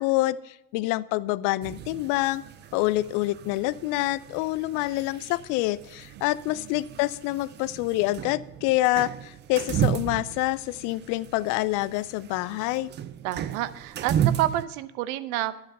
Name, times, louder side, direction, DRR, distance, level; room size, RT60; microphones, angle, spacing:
voice 1, 0.0-2.4 2.7-12.9, left 18 dB, 40° left, 18 dB, 0.5 m, -27 dB
sound 1, 1.6-14.7, right 10 dB, 25° right, 0.4 m, -34 dB
voice 2, 13.2-15.6, right 14 dB, 60° right, 14 dB, 0.8 m, -29 dB
12.0 x 7.9 x 5.4 m, 0.85 s
hypercardioid pair, 80°, 50 cm